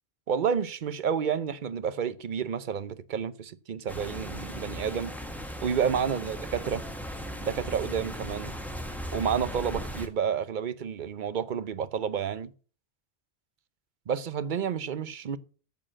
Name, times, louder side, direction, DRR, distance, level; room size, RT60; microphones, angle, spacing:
voice 1, 0.3-5.1 5.6-6.8 7.4-8.5 9.1-12.5 14.1-15.4, right 7 dB, 55° right, 0.8 m, -30 dB
sound 1, 3.9-10.1, equal, ahead, 1.5 m, -37 dB
8.8 x 7.0 x 7.4 m
omnidirectional pair, 1.1 m